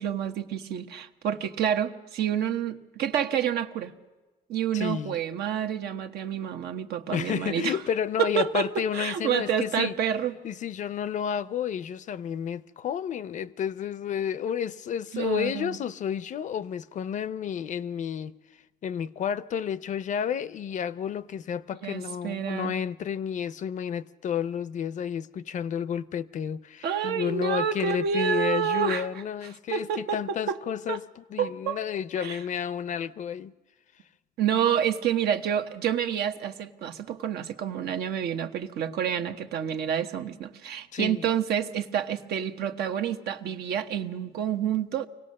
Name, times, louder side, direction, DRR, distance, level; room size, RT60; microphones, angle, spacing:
voice 1, 0.0-3.9 4.5-7.8 8.2-10.3 15.1-15.8 21.8-22.7 26.8-29.1 29.7-30.6 30.9-31.0 31.4-31.8 32.2-32.4 34.4-45.1, right 9 dB, 70° right, 1.1 m, -28 dB
voice 2, 4.7-5.2 7.1-9.9 10.4-18.3 18.8-33.5 40.9-41.2, left 8 dB, 45° left, 0.6 m, -31 dB
24.5 x 17.5 x 6.5 m
cardioid pair, 110°, 17 cm